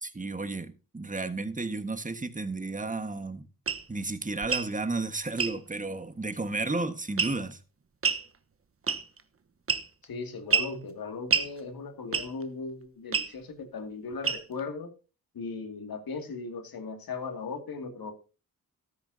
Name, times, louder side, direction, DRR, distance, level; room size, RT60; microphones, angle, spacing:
voice 1, 0.0-3.4 3.9-7.6, right 3 dB, 20° right, 1.6 m, -33 dB
sound 1, 3.7-3.8 4.4-4.7 5.4-5.6 7.2-7.5 8.0-8.2 8.9-9.2 9.7-10.0 10.5-10.7 11.3-11.5 12.1-12.4 13.1-13.3 14.2-14.6, right 5 dB, 40° right, 1.2 m, -27 dB
voice 2, 10.0-14.9 15.3-18.1, left 4 dB, 75° left, 2.5 m, -37 dB
13.5 x 13.0 x 2.8 m
cardioid pair, 60°, 36 cm